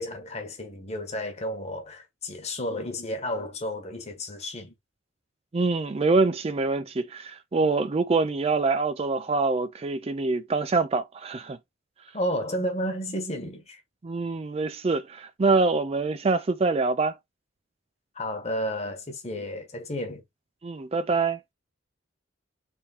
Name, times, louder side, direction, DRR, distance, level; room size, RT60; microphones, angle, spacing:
voice 1, 0.0-4.7 12.1-13.8 18.1-20.2, equal, 35° left, 1.2 m, -32 dB
voice 2, 5.5-11.6 14.0-17.2 20.6-21.4, right 3 dB, 30° right, 0.4 m, -25 dB
3.6 x 3.0 x 4.3 m
head